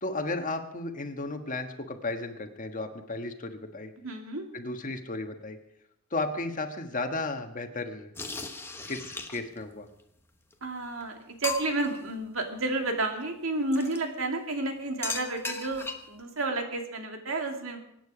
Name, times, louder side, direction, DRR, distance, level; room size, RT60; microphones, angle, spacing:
voice 1, 0.0-3.9 4.5-5.6 6.1-8.1 8.9-9.9, left 2 dB, 40° left, 6 dB, 1.4 m, -34 dB
voice 2, 4.0-4.5 10.6-17.8, right 2 dB, 90° right, 3 dB, 2.5 m, -31 dB
sound 1, 8.2-9.6 10.5-10.6 11.0-11.1 11.4-12.0 13.7-14.0 15.0-16.2, left 3 dB, 10° left, 1.1 m, -36 dB
24.5 x 9.3 x 5.0 m, 0.77 s
head